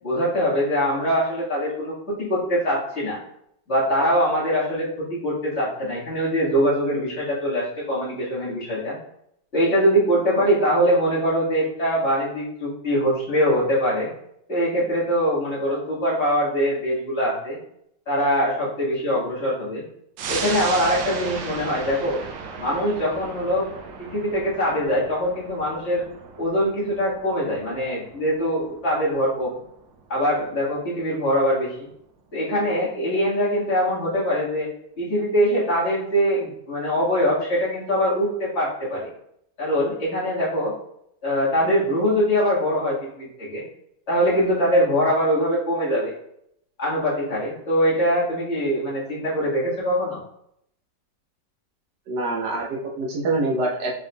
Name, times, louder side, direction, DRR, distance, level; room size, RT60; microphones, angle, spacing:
voice 1, 0.0-3.2 3.7-9.0 9.5-14.1 14.5-17.6 18.1-19.8 20.3-22.2 22.6-23.7 24.0-26.0 26.4-29.5 30.1-31.9 32.3-34.7 35.0-39.1 39.6-40.7 41.2-43.6 44.1-46.1 46.8-50.2, equal, 40° left, -7 dB, 1.9 m, -23 dB
sound 1, 20.2-31.1 31.5-31.6, right 5 dB, 90° right, 1.4 m, -36 dB
voice 2, 52.1-53.9, right 2 dB, 70° right, -1 dB, 1.4 m, -25 dB
5.3 x 3.5 x 2.3 m, 0.73 s
omnidirectional pair, 2.0 m